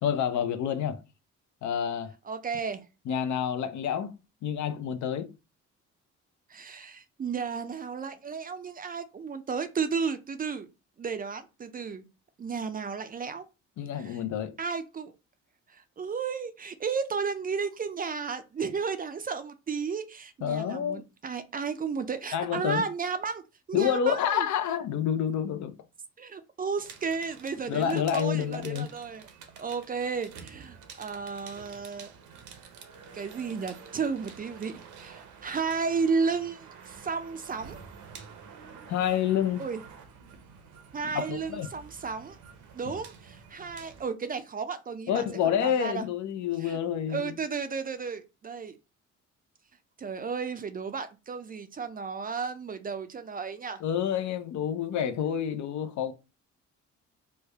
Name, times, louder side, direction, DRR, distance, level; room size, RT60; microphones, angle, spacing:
voice 1, 0.0-1.0 1.6-2.1 3.1-4.1 4.4-5.3 13.8-14.5 20.4-21.0 22.3-22.8 23.7-25.7 27.7-28.9 38.9-39.6 41.1-41.7 42.9-43.0 45.1-47.3 53.8-56.1, left 9 dB, 70° left, 0.6 m, -28 dB
voice 2, 2.3-2.8 6.5-10.7 11.0-12.0 12.4-13.4 14.0-14.2 14.6-15.1 15.7-23.4 23.7-24.5 26.2-29.3 29.6-32.1 33.1-37.8 39.6-39.8 40.9-42.4 42.7-46.0 46.6-46.8 47.1-48.8 50.0-53.8, right 5 dB, 30° right, 0.4 m, -33 dB
sound 1, 26.8-44.0, right 6 dB, 75° right, 0.7 m, -49 dB
3.3 x 2.1 x 3.3 m
cardioid pair, 90°, 30 cm